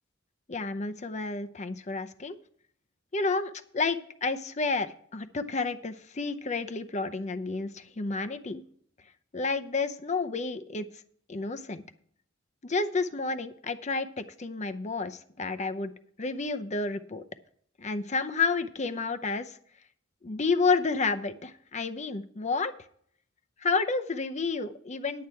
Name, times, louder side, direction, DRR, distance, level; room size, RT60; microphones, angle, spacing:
voice 1, 0.5-2.4 3.1-8.6 9.3-10.9 11.3-11.8 12.6-15.9 16.2-17.2 17.8-19.6 20.2-22.7 23.6-25.3, left 4 dB, 35° left, 10 dB, 0.7 m, -30 dB
11.0 x 8.6 x 4.5 m, 0.62 s
head